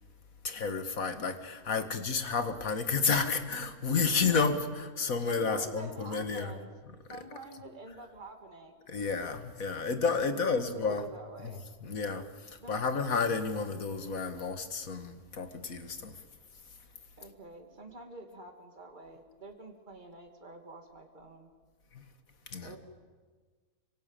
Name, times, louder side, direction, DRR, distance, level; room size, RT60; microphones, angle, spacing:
voice 1, 0.4-6.5 7.1-7.2 8.9-11.1 11.4-16.2 16.7-16.8 21.9-22.1 22.5-22.8, left 5 dB, 60° left, 9 dB, 2.2 m, -31 dB
voice 2, 5.3-6.7 7.1-8.8 10.3-11.7 12.6-12.8 17.2-21.5 22.6-22.8, right 2 dB, 30° right, 3 dB, 2.9 m, -47 dB
26.0 x 24.0 x 9.2 m, 1.5 s
omnidirectional pair, 1.6 m